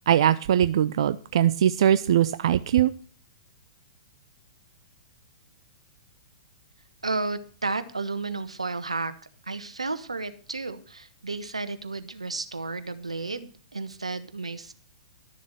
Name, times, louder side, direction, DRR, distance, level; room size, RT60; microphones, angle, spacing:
voice 1, 0.1-2.9, right 10 dB, 60° right, 13 dB, 0.5 m, -21 dB
voice 2, 7.0-9.1 9.4-14.7, right 3 dB, 85° right, 12 dB, 1.3 m, -32 dB
12.5 x 7.2 x 6.2 m, 0.40 s
figure-of-eight pair, 110°, 3 cm